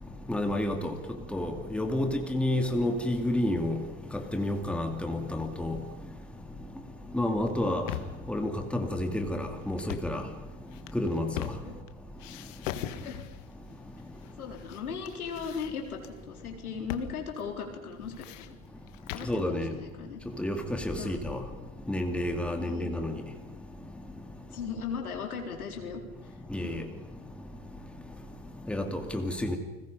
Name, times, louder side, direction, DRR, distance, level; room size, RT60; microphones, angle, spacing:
voice 1, 0.3-0.9 1.3-3.8 4.1-5.8 7.1-7.9 8.3-10.2 10.9-11.5 19.3-19.7 20.4-21.4 21.9-23.2 26.5-26.8 28.7-29.6, left 1 dB, 5° left, 2.4 m, -30 dB
sound 1, 7.5-8.3 9.7-10.2 10.7-11.9 12.2-13.5 14.2-14.8 15.1-16.1 16.9-17.1 17.4-17.5 17.9-19.4, left 12 dB, 60° left, 1.8 m, -40 dB
voice 2, 14.4-18.6 19.1-20.2 21.0-21.2 22.6-22.9 24.5-26.3 26.6-26.8, left 6 dB, 80° left, 4.2 m, -38 dB
30.0 x 20.5 x 5.4 m
hypercardioid pair, 90°, 43 cm